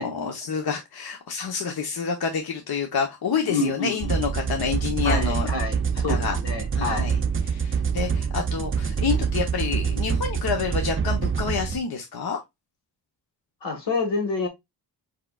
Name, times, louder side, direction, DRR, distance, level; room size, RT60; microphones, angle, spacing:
voice 1, 0.0-5.5 6.1-6.4 6.7-7.2 7.4-12.4, left 6 dB, 60° left, 1.0 m, -28 dB
voice 2, 3.4-4.1 5.0-7.1 13.6-14.5, left 3 dB, 85° left, 1.8 m, -28 dB
sound 1, 4.0-11.8, right 6 dB, 30° right, 0.6 m, -26 dB
4.8 x 4.5 x 2.4 m
cardioid pair, 65°, 41 cm